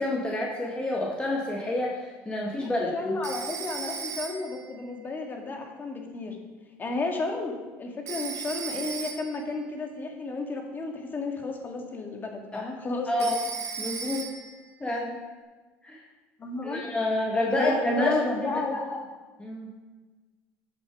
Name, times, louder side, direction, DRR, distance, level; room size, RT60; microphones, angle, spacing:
voice 1, 0.0-3.2 12.5-12.7 13.1-13.4 13.8-14.3 14.8-15.2 15.8-16.0 16.6-18.2 18.4-18.6 19.4-19.7, left 1 dB, 15° left, -3 dB, 2.1 m, -28 dB
voice 2, 2.6-6.4 6.8-13.3 16.4-16.8 17.5-19.1, left 2 dB, 35° left, 2 dB, 2.1 m, -32 dB
Telephone, 3.2-4.7 8.1-9.5 13.2-14.6, right 6 dB, 55° right, 1.4 m, -36 dB
11.5 x 6.9 x 4.9 m, 1.3 s
supercardioid pair, 95°, 6 cm